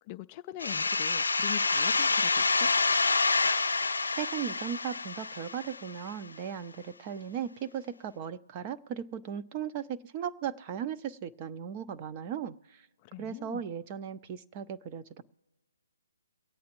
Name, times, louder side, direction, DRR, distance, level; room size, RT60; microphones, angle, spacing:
voice 1, 0.1-2.7 13.0-13.6, left 15 dB, 25° left, 0.3 m, -42 dB
sound 1, 0.6-6.1, left 3 dB, 85° left, 0.5 m, -27 dB
voice 2, 4.1-12.9 13.2-15.2, right 8 dB, 30° right, 0.5 m, -37 dB
24.0 x 8.5 x 3.0 m
hypercardioid pair, 150°, 0 cm